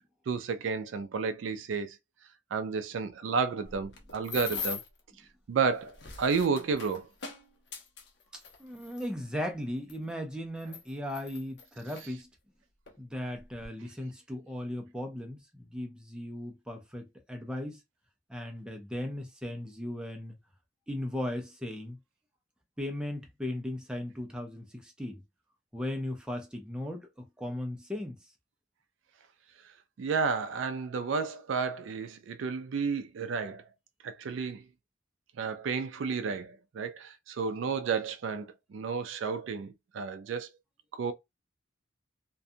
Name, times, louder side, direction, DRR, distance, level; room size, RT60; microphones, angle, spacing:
voice 1, 0.3-2.0 2.5-4.8 5.5-7.1 30.0-33.6 34.0-34.6 35.4-40.5 40.9-41.1, right 5 dB, 80° right, 0.4 m, -31 dB
sound 1, 3.6-5.0 5.7-9.1 9.9-10.0 10.6-12.1 12.9-13.0 13.3-13.7, left 6 dB, 60° left, 0.7 m, -41 dB
voice 2, 8.3-12.3 13.0-17.8 18.3-20.4 20.9-22.0 22.8-25.2 25.7-27.1 27.4-28.2, left 1 dB, 5° right, 0.5 m, -37 dB
2.5 x 2.2 x 2.6 m
head